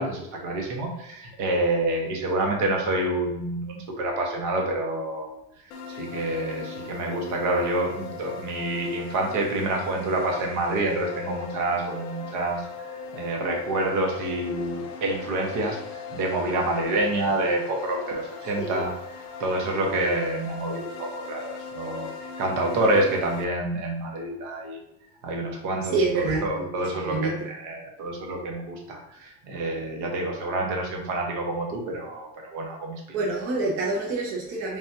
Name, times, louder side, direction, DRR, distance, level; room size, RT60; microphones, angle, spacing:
voice 1, 0.0-5.3 5.9-12.6 12.9-18.9 19.4-22.1 22.4-24.8 25.2-33.0, right 1 dB, 55° right, 1 dB, 1.2 m, -27 dB
sound 1, 5.7-23.4, left 5 dB, 85° left, 0.7 m, -39 dB
voice 2, 18.5-18.8 25.9-27.5 33.1-34.8, right 3 dB, 40° right, -3 dB, 0.8 m, -27 dB
4.0 x 3.6 x 2.8 m, 0.83 s
cardioid pair, 155°, 35 cm